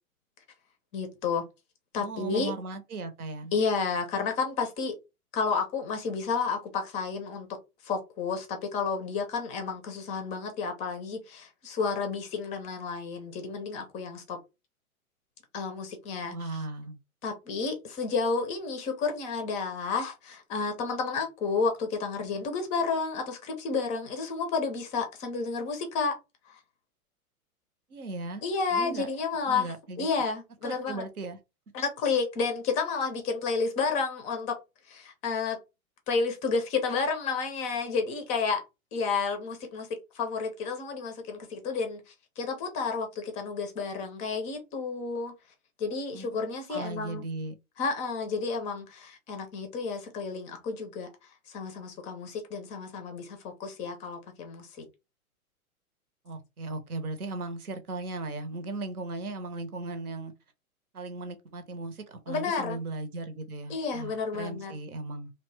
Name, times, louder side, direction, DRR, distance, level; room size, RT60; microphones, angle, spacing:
voice 1, 0.9-1.5 1.9-2.5 3.5-5.0 5.3-7.6 7.8-14.4 15.5-16.3 17.2-26.2 26.5-26.6 28.4-31.0 31.7-34.6 34.9-35.6 36.1-38.6 38.9-45.3 45.8-47.2 47.8-51.1 51.5-54.9 62.3-62.8 63.7-64.7, left 4 dB, 15° left, 0.4 m, -31 dB
voice 2, 1.9-3.5 16.2-17.0 27.9-28.4 28.7-29.1 29.5-30.1 30.6-31.4 46.1-46.3 46.7-47.6 56.2-60.3 60.9-65.3, right 2 dB, 85° right, 0.8 m, -37 dB
2.7 x 2.1 x 3.2 m
figure-of-eight pair, 105°, 43 cm